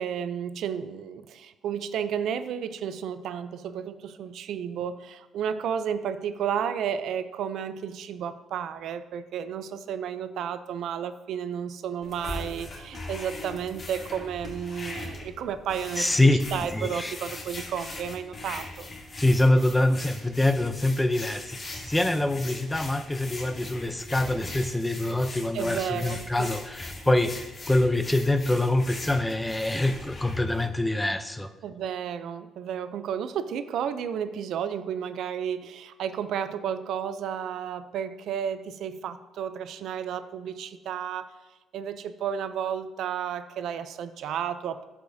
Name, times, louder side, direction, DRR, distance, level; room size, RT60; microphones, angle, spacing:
voice 1, 0.0-16.1 16.5-18.9 25.5-26.5 31.6-41.3 41.7-44.8, right 8 dB, 75° right, 12 dB, 0.4 m, -32 dB
sound 1, 12.0-30.6, left 2 dB, 35° left, 1.7 m, -40 dB
voice 2, 16.0-17.1 19.2-27.3 27.7-31.5, left 1 dB, 10° left, 9 dB, 0.5 m, -25 dB
13.0 x 4.9 x 2.7 m, 1.1 s
cardioid pair, 95°, 0 cm